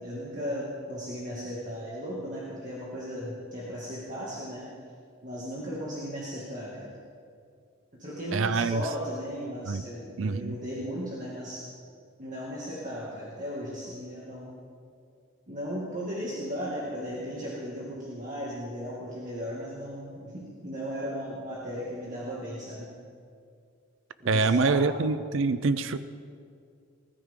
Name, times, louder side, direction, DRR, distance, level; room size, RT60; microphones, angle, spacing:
voice 1, 0.0-4.7 5.2-6.9 8.0-11.7 12.2-14.5 15.5-22.9 24.2-24.9, equal, 35° right, -7 dB, 2.3 m, -36 dB
voice 2, 8.3-8.8 9.7-9.8 10.2-10.5 24.3-26.0, right 4 dB, 65° right, 13 dB, 0.5 m, -25 dB
20.0 x 13.5 x 3.8 m, 2.3 s
head